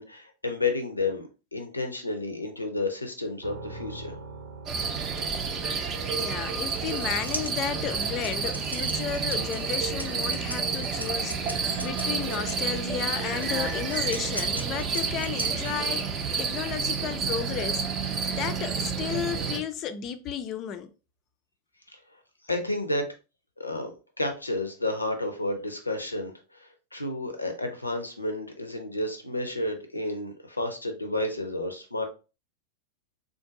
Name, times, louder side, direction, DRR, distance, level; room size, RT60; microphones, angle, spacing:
voice 1, 0.0-4.2 21.9-22.0 22.5-23.1 23.6-32.0, left 2 dB, 85° left, 0.6 m, -31 dB
sound 1, 3.4-17.2, right 3 dB, 65° right, 0.8 m, -48 dB
sound 2, 4.7-19.6, right 5 dB, 30° right, 0.6 m, -30 dB
voice 2, 5.7-20.9, left 9 dB, 35° left, 0.4 m, -33 dB
sound 3, 6.4-12.7 13.4-16.0, equal, 90° right, 0.3 m, -39 dB
3.7 x 2.5 x 2.5 m
figure-of-eight pair, 90°, 0 cm